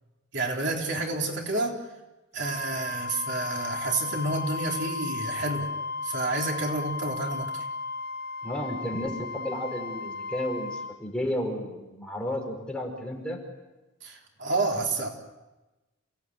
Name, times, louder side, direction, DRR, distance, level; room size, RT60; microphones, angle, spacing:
voice 1, 0.3-1.8 2.3-5.7 6.0-7.7 14.0-15.1, right 2 dB, 60° right, 1 dB, 3.7 m, -29 dB
Wind instrument woodwind instrument, 2.4-11.0, left 3 dB, 50° left, 3.2 m, -35 dB
voice 2, 8.4-13.4, left 1 dB, 5° left, 0 dB, 5.1 m, -32 dB
29.0 x 18.0 x 9.3 m, 1.1 s
head